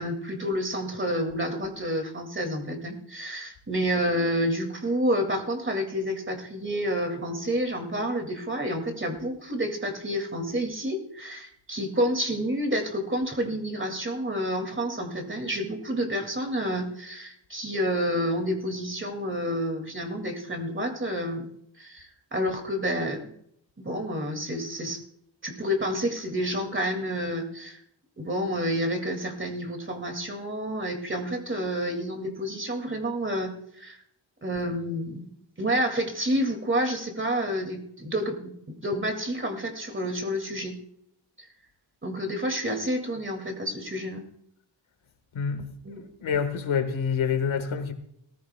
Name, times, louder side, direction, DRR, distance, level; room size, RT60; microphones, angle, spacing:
voice 1, 0.0-21.5 21.8-23.3 23.8-25.0 25.4-27.8 28.2-34.0 34.4-35.3 35.6-38.4 38.7-40.8 41.4-41.5 42.0-44.2 45.8-46.1, equal, 25° right, 2.2 m, -29 dB
voice 2, 45.3-45.7 46.2-47.9, left 6 dB, 85° left, 1.5 m, -27 dB
19.0 x 14.0 x 2.2 m
wide cardioid pair, 105°, 47 cm